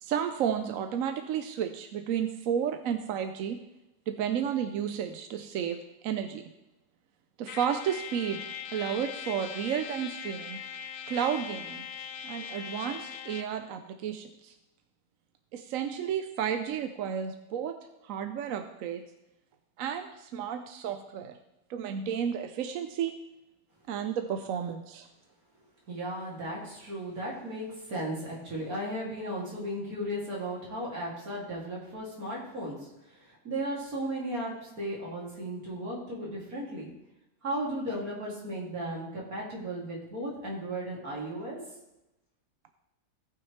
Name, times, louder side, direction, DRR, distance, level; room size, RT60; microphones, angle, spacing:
voice 1, 0.0-3.6 4.1-5.8 6.0-6.4 7.4-10.6 11.1-11.8 12.2-14.5 15.5-17.8 18.0-19.0 19.8-21.4 21.7-23.2 23.9-25.1, right 8 dB, 70° right, 7 dB, 1.0 m, -32 dB
Trumpet, 7.5-13.6, left 8 dB, 65° left, 0.7 m, -40 dB
voice 2, 25.9-36.9 37.4-41.6, right 1 dB, 85° right, -5 dB, 3.2 m, -35 dB
17.5 x 6.0 x 3.2 m, 0.93 s
omnidirectional pair, 1.5 m